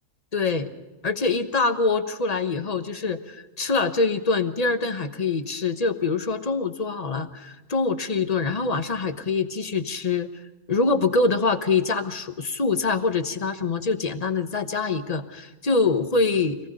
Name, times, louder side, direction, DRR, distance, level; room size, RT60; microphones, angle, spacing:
voice 1, 0.3-0.7 1.0-10.3 10.7-16.6, left 4 dB, 30° left, 9 dB, 0.8 m, -24 dB
25.5 x 19.0 x 5.4 m, 1.2 s
omnidirectional pair, 1.9 m